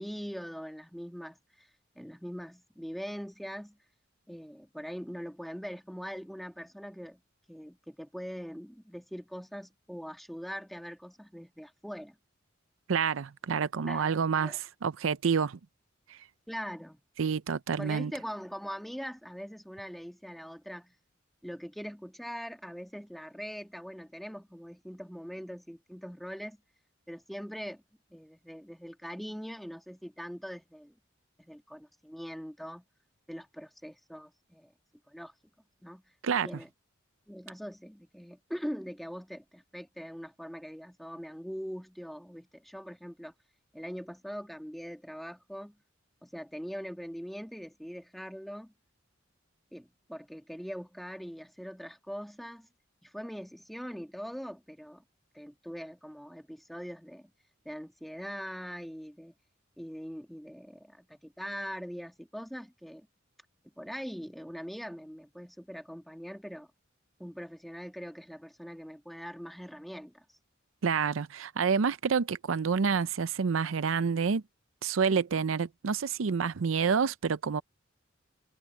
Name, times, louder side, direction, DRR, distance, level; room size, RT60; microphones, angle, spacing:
voice 1, 0.0-1.7 1.9-3.8 4.3-7.2 7.5-12.2 13.8-14.6 16.5-17.0 17.8-20.9 21.4-26.6 27.1-27.8 28.1-30.9 31.4-32.8 33.3-34.7 35.1-35.3 35.8-36.0 36.4-36.7 37.3-43.3 43.7-45.8 46.2-48.7 49.7-52.7 53.0-55.0 55.3-57.3 57.6-59.3 59.8-63.1 63.8-66.7 67.2-70.2, equal, ahead, 1.7 m, -42 dB
voice 2, 12.9-15.6 16.1-16.2 17.2-18.1 36.2-36.5 70.8-74.4 74.8-77.6, right 6 dB, 85° right, 0.5 m, -28 dB
head